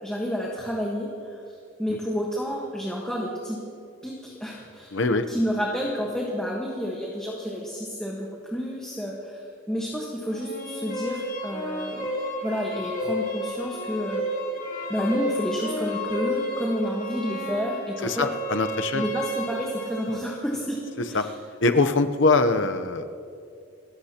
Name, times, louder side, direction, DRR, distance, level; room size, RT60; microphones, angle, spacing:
voice 1, 0.0-1.4 1.8-3.6 4.0-4.9 5.3-12.1 12.4-14.2 14.9-18.3 18.9-20.8 21.1-21.3, equal, 5° left, -3 dB, 1.3 m, -30 dB
voice 2, 4.9-5.2 18.0-19.0 21.1-21.3 21.6-23.1, left 3 dB, 60° left, 8 dB, 0.8 m, -22 dB
sound 1, 10.3-20.2, equal, 45° left, 4.5 m, -31 dB
27.5 x 14.5 x 2.9 m, 2.5 s
head